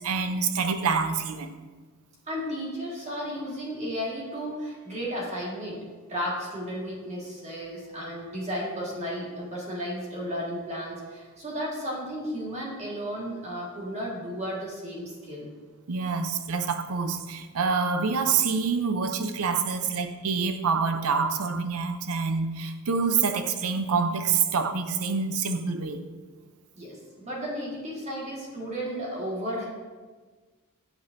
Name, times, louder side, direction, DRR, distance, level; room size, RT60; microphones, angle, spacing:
voice 1, 0.0-1.5 15.9-26.1, right 5 dB, 80° right, 8 dB, 0.6 m, -26 dB
voice 2, 2.3-5.8 6.1-15.5 26.7-29.7, equal, 30° right, -4 dB, 1.7 m, -34 dB
8.9 x 5.3 x 2.6 m, 1.4 s
head